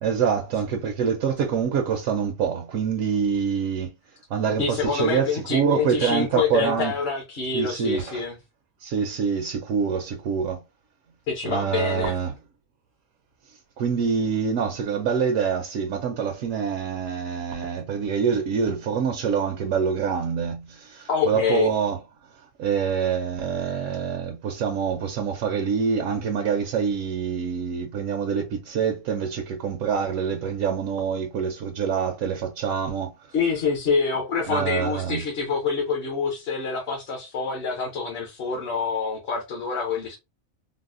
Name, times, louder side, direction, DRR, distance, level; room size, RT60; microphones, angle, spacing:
voice 1, 0.0-3.9 4.3-6.9 7.5-8.2 8.8-10.6 11.4-12.3 13.8-22.0 22.6-33.1 34.5-35.2, right 6 dB, 80° right, 1.0 m, -25 dB
voice 2, 4.6-8.4 11.3-12.1 21.1-21.7 33.3-40.2, left 5 dB, 55° left, 0.9 m, -26 dB
4.0 x 2.1 x 2.4 m
omnidirectional pair, 1.4 m